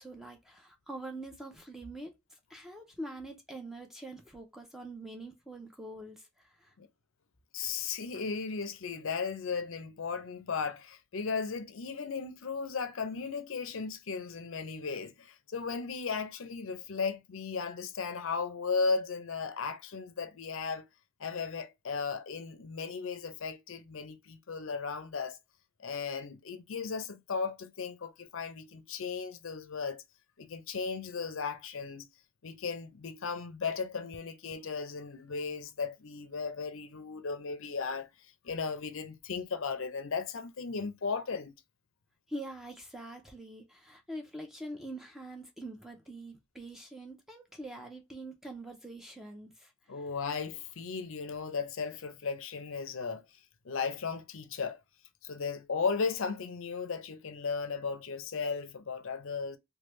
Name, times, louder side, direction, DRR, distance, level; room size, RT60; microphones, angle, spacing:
voice 1, 0.0-2.1 2.5-6.7 42.3-50.0, right 1 dB, ahead, 0.6 m, -44 dB
voice 2, 7.5-20.8 21.2-25.4 25.8-30.0 30.4-32.1 32.4-38.1 38.4-41.5 49.9-53.2 53.6-54.8 55.2-59.6, left 5 dB, 65° left, 0.5 m, -36 dB
3.2 x 2.3 x 3.1 m
head